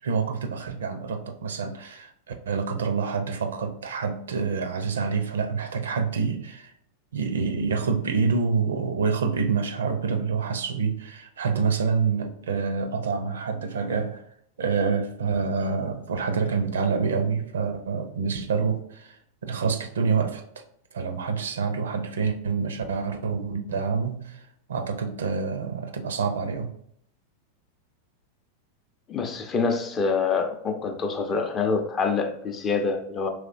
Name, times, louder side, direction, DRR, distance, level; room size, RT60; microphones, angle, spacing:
voice 1, 0.0-6.7 7.1-14.2 14.6-20.4 20.9-26.7, right 5 dB, 65° right, 0.5 m, -27 dB
voice 2, 29.1-33.3, left 5 dB, 25° left, 0.5 m, -26 dB
4.8 x 3.2 x 2.5 m
figure-of-eight pair, 90°, 0 cm